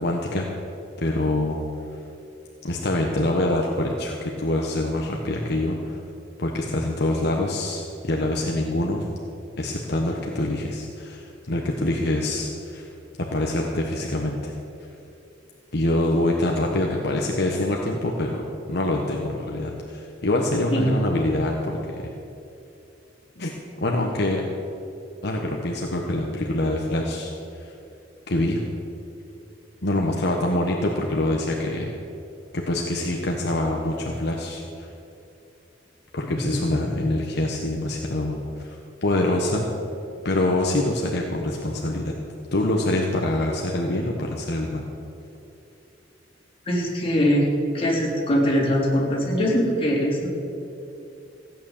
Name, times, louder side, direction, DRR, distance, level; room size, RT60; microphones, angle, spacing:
voice 1, 0.0-0.5 1.0-1.6 2.6-6.0 6.4-9.1 9.6-12.9 13.2-14.5 15.7-22.1 23.4-23.5 23.8-24.4 25.2-27.3 27.6-27.7 28.3-28.6 29.8-32.0 32.5-34.9 36.1-39.7 40.2-42.1 42.5-44.8, left 1 dB, 60° left, 0 dB, 1.3 m, -25 dB
voice 2, 36.3-36.6 46.7-47.5 47.7-50.3, equal, 30° left, -4 dB, 3.5 m, -22 dB
16.0 x 9.3 x 7.2 m, 2.7 s
head